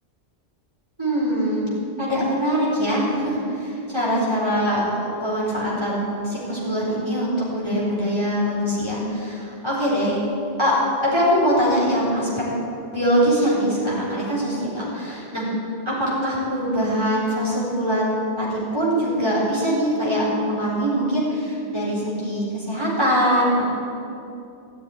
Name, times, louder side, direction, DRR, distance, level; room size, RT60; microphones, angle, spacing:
voice 1, 1.0-1.7 2.0-10.2 10.6-10.8 11.0-12.3 12.9-15.5 15.9-23.7, equal, 25° right, -7 dB, 4.2 m, -23 dB
15.5 x 7.5 x 9.9 m, 2.7 s
omnidirectional pair, 1.2 m